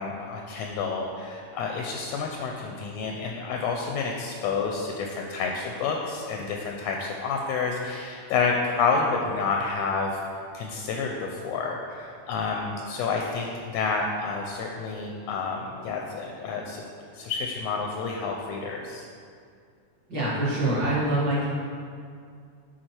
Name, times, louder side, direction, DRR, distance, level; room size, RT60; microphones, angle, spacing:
voice 1, 0.0-10.2 10.5-16.8 17.1-19.0, left 4 dB, 80° left, 1 dB, 1.6 m, -29 dB
voice 2, 20.1-21.5, right 1 dB, 40° right, -9 dB, 2.1 m, -25 dB
7.5 x 4.5 x 4.4 m, 2.3 s
omnidirectional pair, 3.3 m